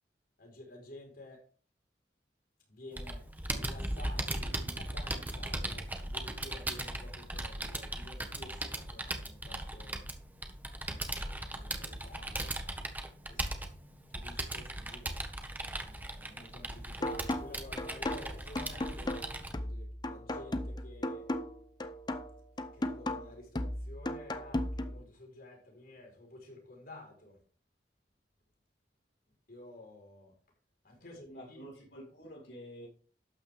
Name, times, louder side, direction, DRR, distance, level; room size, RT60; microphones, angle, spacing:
voice 1, 0.4-1.4 2.7-10.0 11.2-12.7 13.3-13.4 14.1-15.2 15.7-19.2 19.5-21.3 22.5-27.4 29.5-30.3 30.8-31.7, left 2 dB, 55° left, 4.6 m, -52 dB
Computer keyboard, 3.0-19.5, right 1 dB, 10° right, 1.5 m, -38 dB
sound 1, 17.0-25.0, left 1 dB, 25° left, 0.8 m, -36 dB
voice 2, 31.0-32.9, equal, 75° left, 3.4 m, -49 dB
12.5 x 8.9 x 3.6 m
head